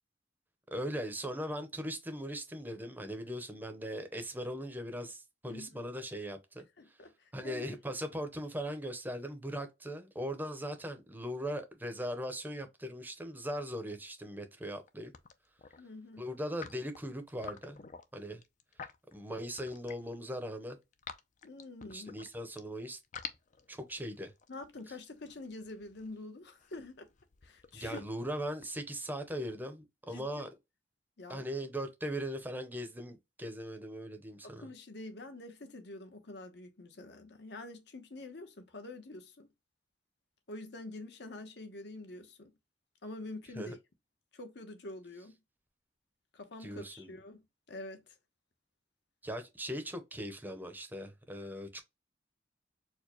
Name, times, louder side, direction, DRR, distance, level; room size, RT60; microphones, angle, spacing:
voice 1, 0.7-6.7 7.3-15.1 16.2-17.8 18.1-18.4 19.1-20.8 21.9-23.0 23.7-24.3 27.7-30.5 31.3-34.7 43.5-43.8 46.6-47.1 49.2-51.8, equal, 10° right, 0.7 m, -39 dB
voice 2, 5.4-5.8 6.8-7.8 15.8-16.3 21.4-22.1 24.5-27.1 27.4-28.0 30.1-30.4 31.2-31.4 34.4-39.5 40.5-42.5 43.0-43.8 44.3-45.4 46.3-47.4 47.7-48.2, left 2 dB, 65° left, 0.9 m, -46 dB
sound 1, 14.7-14.9 15.1-15.8 16.4-20.1 20.5-22.6 23.0-29.0, left 6 dB, 40° left, 0.5 m, -49 dB
4.6 x 2.2 x 2.9 m
head